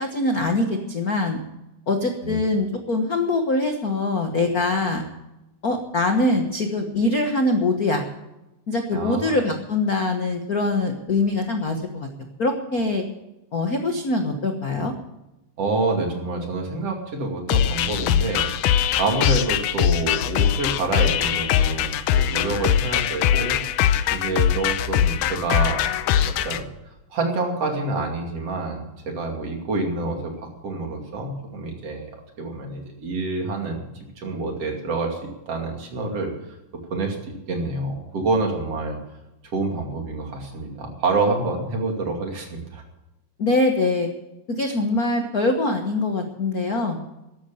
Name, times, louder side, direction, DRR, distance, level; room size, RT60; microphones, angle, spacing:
voice 1, 0.0-1.4 1.9-5.0 5.6-8.0 8.7-12.1 12.4-13.0 13.5-14.9 43.4-44.1 44.5-47.0, left 2 dB, 60° left, 4 dB, 0.9 m, -23 dB
voice 2, 8.9-9.4 15.6-18.5 19.0-23.6 24.1-26.6 27.1-32.1 32.4-35.2 35.5-36.3 36.9-39.0 39.5-42.8, right 3 dB, 50° right, 2 dB, 3.5 m, -27 dB
sound 1, 17.5-26.6, left 10 dB, 80° left, 2.2 m, -21 dB
14.5 x 11.5 x 7.0 m, 0.96 s
omnidirectional pair, 3.8 m